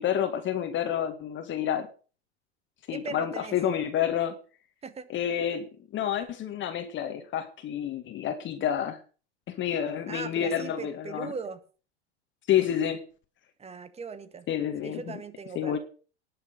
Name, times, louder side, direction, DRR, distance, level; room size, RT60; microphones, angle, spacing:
voice 1, 0.0-1.9 2.9-4.4 5.1-9.0 9.5-11.3 12.5-13.0 14.5-15.0 15.6-15.8, left 9 dB, 35° left, 7 dB, 1.9 m, -29 dB
voice 2, 2.9-3.6 4.8-5.1 10.1-11.6 13.6-14.5 14.8-15.8, right 5 dB, 20° right, 12 dB, 1.8 m, -39 dB
19.0 x 6.9 x 6.7 m, 0.38 s
hypercardioid pair, 105°, 33 cm